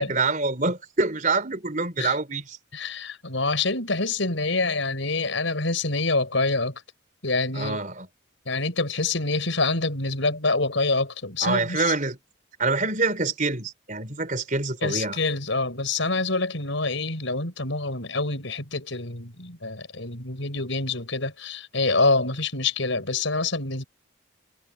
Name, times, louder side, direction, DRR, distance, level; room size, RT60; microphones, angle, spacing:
voice 1, 0.0-2.6 7.5-8.1 11.4-12.2 12.6-15.2, right 3 dB, 40° right, 4.7 m, -26 dB
voice 2, 2.7-6.8 7.2-7.8 8.5-11.9 14.8-23.8, left 3 dB, 70° left, 5.2 m, -26 dB
head